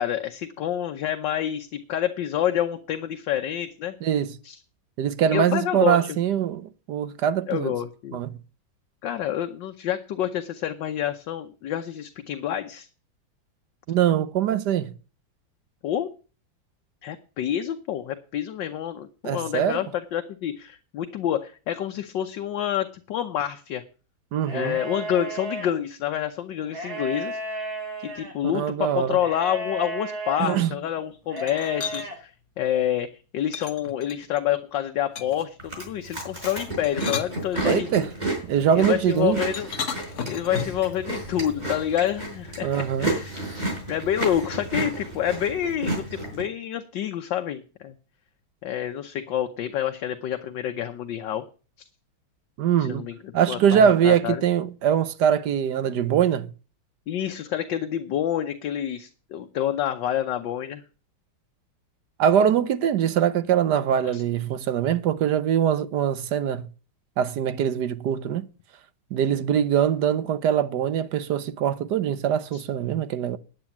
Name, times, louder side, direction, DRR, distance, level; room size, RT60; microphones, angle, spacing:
voice 1, 0.0-3.9 4.4-4.6 5.3-6.0 7.5-8.2 9.0-12.9 15.8-16.1 17.0-23.8 24.5-27.7 28.0-32.3 32.6-33.1 33.3-37.9 38.7-39.7 40.3-47.9 48.6-51.4 52.9-54.4 57.1-60.8 64.0-64.2 72.5-72.6, left 10 dB, 70° left, 1.5 m, -28 dB
voice 2, 4.0-4.3 5.0-7.7 8.1-8.3 13.9-14.9 19.2-19.8 24.3-24.8 28.5-29.2 30.4-30.7 37.6-38.1 38.4-39.4 42.6-43.1 52.6-53.1 53.3-56.5 62.2-66.7 67.2-68.5 69.1-73.4, right 9 dB, 65° right, 1.2 m, -23 dB
sound 1, 24.4-25.7 26.6-28.3 29.2-30.4 31.3-32.2, right 2 dB, 50° right, 4.1 m, -34 dB
sound 2, 31.4-32.1 33.5-34.4 35.1-35.5 36.7-38.0 39.5-40.9, left 6 dB, 45° left, 1.2 m, -34 dB
Chewing mastication, 35.6-46.4, right 2 dB, 20° right, 5.5 m, -32 dB
9.9 x 9.1 x 7.1 m
omnidirectional pair, 2.2 m